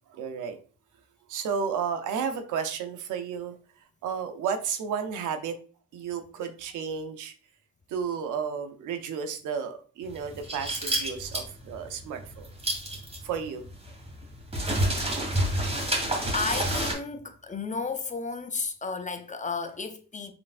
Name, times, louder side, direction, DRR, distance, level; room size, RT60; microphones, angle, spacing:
voice 1, 0.1-0.6 1.3-3.6 4.0-5.6 5.9-7.3 7.9-12.5 13.2-13.7, right 6 dB, 85° right, 0.8 m, -32 dB
sound 1, 10.1-16.9, right 1 dB, 20° right, 1.9 m, -29 dB
voice 2, 16.3-20.3, left 4 dB, 25° left, 0.6 m, -33 dB
6.0 x 3.2 x 2.5 m
cardioid pair, 90°, 30 cm